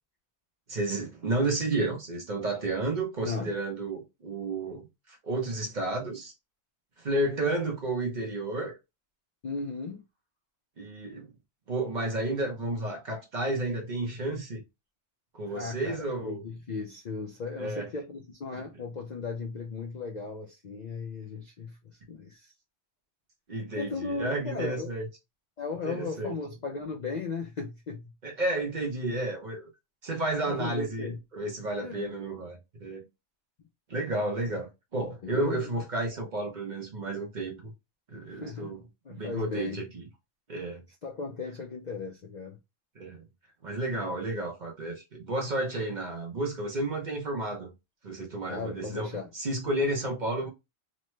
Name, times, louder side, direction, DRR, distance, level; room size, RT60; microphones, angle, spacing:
voice 1, 0.7-4.8 5.2-6.3 7.0-8.8 10.8-11.3 11.7-14.6 15.3-16.4 17.6-17.9 23.5-25.0 25.8-26.3 28.2-29.7 30.0-33.0 33.9-37.7 38.1-38.8 39.1-40.0 40.5-40.8 43.0-43.2 43.6-47.7 48.0-50.5, right 2 dB, 45° right, 0.7 m, -31 dB
voice 2, 3.2-3.6 9.4-10.0 15.5-16.0 16.2-22.5 23.8-24.9 25.6-28.1 30.5-31.2 31.8-32.2 35.2-35.7 38.3-39.8 41.0-42.6 48.5-49.3, left 4 dB, 60° left, 0.4 m, -36 dB
3.1 x 2.1 x 3.0 m
omnidirectional pair, 1.3 m